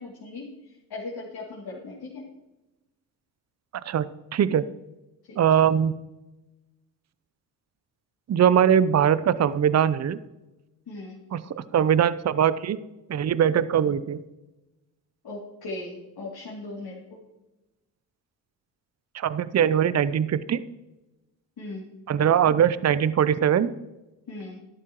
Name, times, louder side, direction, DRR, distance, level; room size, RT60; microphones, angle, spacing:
voice 1, 0.0-2.3 5.3-5.4 10.9-11.2 15.2-17.2 21.6-21.9 24.3-24.6, left 2 dB, 50° left, -4 dB, 2.9 m, -38 dB
voice 2, 4.3-4.6 5.4-6.0 8.3-10.2 11.3-12.8 13.1-14.2 19.1-20.6 22.1-23.7, right 9 dB, 35° right, 16 dB, 0.6 m, -21 dB
13.0 x 11.0 x 3.1 m, 1.0 s
hypercardioid pair, 50°, 48 cm